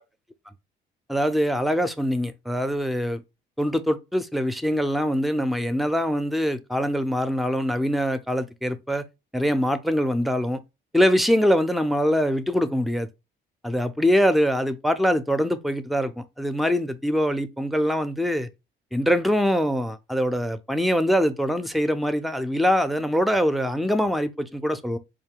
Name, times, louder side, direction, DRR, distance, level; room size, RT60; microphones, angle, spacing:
voice 1, 1.1-3.2 3.6-9.0 9.3-10.6 10.9-13.1 13.6-18.5 18.9-25.0, equal, ahead, 0.5 m, -23 dB
4.9 x 2.2 x 3.6 m
cardioid pair, 90°, 20 cm